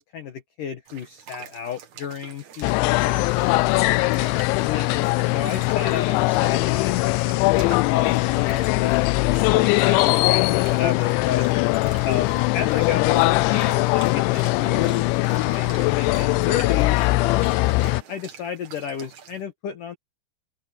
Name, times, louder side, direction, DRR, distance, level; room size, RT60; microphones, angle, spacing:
voice 1, 0.0-3.5 4.7-9.0 9.5-11.5 12.0-17.5 18.1-20.0, left 8 dB, 75° left, 1.9 m, -32 dB
sound 1, 0.9-19.4, right 8 dB, 60° right, 2.0 m, -46 dB
sound 2, 2.6-18.0, left 22 dB, 90° left, 2.6 m, -21 dB
voice 2, 3.2-4.9, left 6 dB, 35° left, 3.7 m, -42 dB
sound 3, 5.5-6.3 7.5-7.6 8.4-9.3 11.6-12.5, left 8 dB, 50° left, 7.5 m, -52 dB
omnidirectional pair, 5.9 m